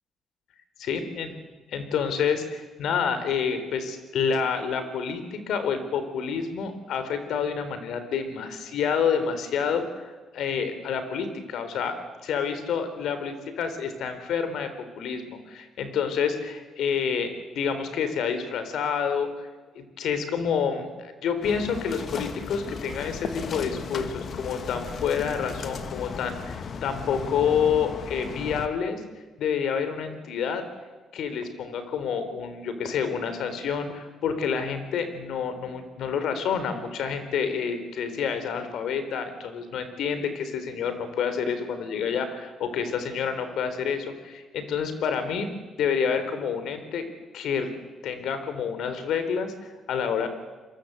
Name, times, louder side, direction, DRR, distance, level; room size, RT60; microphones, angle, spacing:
voice 1, 0.8-1.3 1.7-14.7 15.0-19.5 19.8-29.0 29.4-30.6 31.1-45.5 45.8-47.0 47.3-47.7 48.0-50.3, left 6 dB, 75° left, 9 dB, 3.9 m, -28 dB
sound 1, 21.4-28.7, left 5 dB, 55° left, 1.8 m, -35 dB
28.0 x 22.5 x 8.2 m, 1.3 s
cardioid pair, 90°, 0 cm